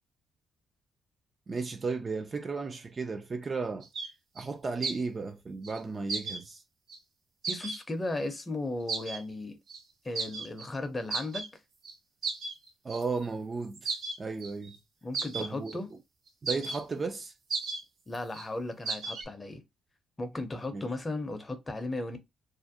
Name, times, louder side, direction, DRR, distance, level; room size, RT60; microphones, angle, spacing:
voice 1, 1.5-3.9 4.4-6.6 12.8-13.9 14.2-14.8 15.3-16.0 16.4-17.3 20.7-20.8, right 4 dB, 35° right, 0.3 m, -34 dB
sound 1, 3.8-4.1 4.4-4.5 4.8-5.0 5.6-5.8 6.1-6.4 6.9-7.0 7.4-7.8 8.9-9.2 9.7-9.8 10.2-10.7 11.1-11.5 11.8-11.9 12.2-13.3 13.7-14.8 15.1-15.8 16.3-16.8 17.2-17.3 17.5-17.8 18.1-18.5 18.9-19.2, right 4 dB, 65° right, 0.7 m, -35 dB
voice 2, 7.5-9.6 10.0-11.5 15.0-15.9 18.1-19.6 20.2-22.2, left 2 dB, 25° left, 0.6 m, -36 dB
2.5 x 2.1 x 2.6 m
cardioid pair, 90°, 0 cm